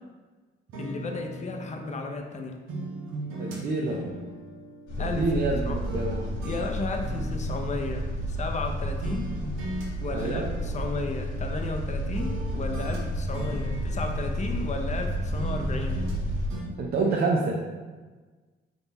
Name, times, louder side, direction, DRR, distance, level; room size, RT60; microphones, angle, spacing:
sound 1, 0.7-2.3 2.7-5.5 5.8-8.7 9.0-9.9 10.2-11.8 12.1-15.0 15.3-16.2 16.5-16.6, right 1 dB, 85° right, 1.0 m, -39 dB
voice 1, 0.8-2.6 5.0-5.3 5.7-5.8 6.4-9.3 10.0-16.0, left 3 dB, 35° left, 4 dB, 0.5 m, -34 dB
voice 2, 3.4-4.1 5.0-6.3 10.1-10.5 16.8-17.7, right 3 dB, 50° right, -1 dB, 0.6 m, -27 dB
sound 2, 4.9-16.5, equal, 80° left, 1.0 m, -31 dB
4.0 x 3.7 x 3.0 m, 1.3 s
cardioid pair, 90°, 20 cm